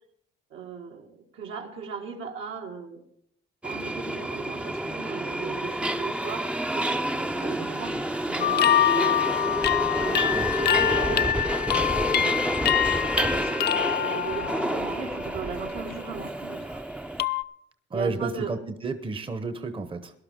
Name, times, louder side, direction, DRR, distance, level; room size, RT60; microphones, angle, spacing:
voice 1, 0.5-3.0 3.6-8.0 8.3-9.2 9.8-11.3 12.0-16.8 17.9-18.6, right 6 dB, 80° right, 1 dB, 2.1 m, -38 dB
Subway metro underground, 3.6-17.2, right 1 dB, 5° right, 0.6 m, -29 dB
sound 1, 7.3-13.0, right 1 dB, 50° right, 1.1 m, -50 dB
sound 2, 8.4-15.3 15.7-16.1 17.2-17.4, left 10 dB, 55° left, 0.5 m, -25 dB
voice 2, 10.1-10.5 17.9-20.1, right 3 dB, 25° right, 9 dB, 0.9 m, -31 dB
18.5 x 11.5 x 3.7 m, 0.72 s
cardioid pair, 90°, 20 cm